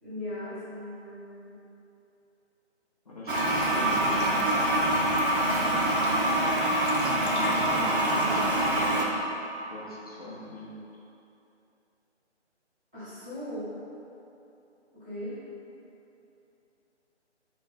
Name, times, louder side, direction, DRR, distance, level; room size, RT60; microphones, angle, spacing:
voice 1, 0.0-1.6 8.0-8.5 12.9-13.7 14.9-15.4, left 1 dB, 5° right, -24 dB, 0.6 m, -39 dB
voice 2, 3.0-4.6 7.2-9.0 9.7-10.7, left 1 dB, 35° left, -7 dB, 0.7 m, -40 dB
Toilet flush, 3.3-9.1, right 1 dB, 50° right, 0.6 m, -25 dB
6.4 x 3.1 x 2.3 m, 2.9 s
figure-of-eight pair, 150°, 35 cm